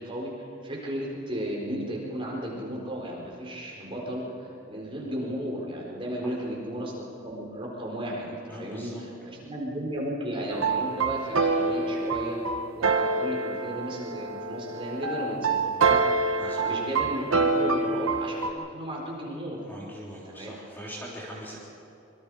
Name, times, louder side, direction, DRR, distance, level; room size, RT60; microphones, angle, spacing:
voice 1, 0.0-19.6 20.2-20.5, equal, 25° right, -3 dB, 4.3 m, -34 dB
voice 2, 8.5-9.0 16.4-16.8 19.7-21.6, equal, 10° left, -5 dB, 3.5 m, -41 dB
sound 1, 10.5-18.5, right 4 dB, 80° right, 1.2 m, -26 dB
25.5 x 23.5 x 4.9 m, 2.7 s
head